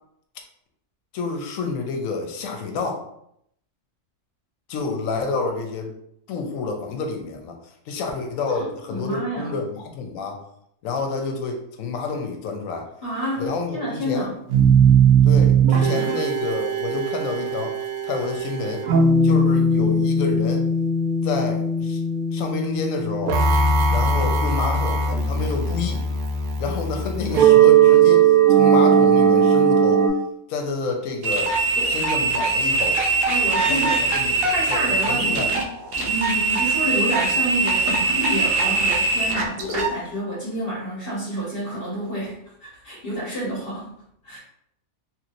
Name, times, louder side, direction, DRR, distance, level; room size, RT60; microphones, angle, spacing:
voice 1, 1.1-3.0 4.7-5.9 6.3-10.4 10.8-12.9 13.4-14.3 15.2-17.8 18.0-18.9 19.2-20.7 21.2-22.0 22.3-23.4 23.9-26.0 26.6-30.1 30.5-31.5 31.9-33.0 33.7-35.6 39.7-39.9, left 4 dB, 80° left, 3 dB, 1.0 m, -29 dB
voice 2, 8.5-9.6 13.0-13.4 13.7-14.3 15.9-16.2 31.8-32.0 33.3-34.1 34.5-35.6 35.9-43.9 44.2-44.4, right 1 dB, 45° left, -6 dB, 1.1 m, -29 dB
sound 1, 14.5-30.1, right 5 dB, 85° right, 1.0 m, -18 dB
sound 2, 31.2-39.9, right 3 dB, 60° right, 0.6 m, -22 dB
3.0 x 2.9 x 2.5 m, 0.73 s
omnidirectional pair, 1.4 m